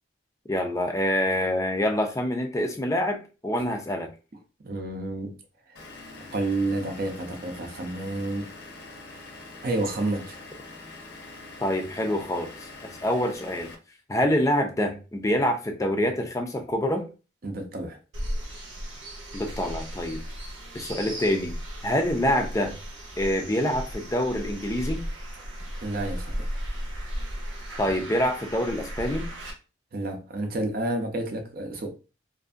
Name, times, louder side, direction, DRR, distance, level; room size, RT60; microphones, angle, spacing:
voice 1, 0.5-4.1 11.6-13.7 14.1-17.1 19.3-20.2 20.7-21.5 21.8-22.7 23.2-25.1 27.8-29.3, left 1 dB, 15° left, 0.4 m, -26 dB
voice 2, 4.6-5.4 5.7-5.8 6.3-8.5 9.6-10.4 17.4-18.0 25.8-26.5 29.9-31.9, right 2 dB, 50° right, 0.6 m, -30 dB
Vehicle / Engine, 5.8-13.8, left 2 dB, 60° left, 0.7 m, -44 dB
sound 1, 18.1-29.5, equal, 90° right, 0.9 m, -35 dB
2.6 x 2.5 x 2.4 m
head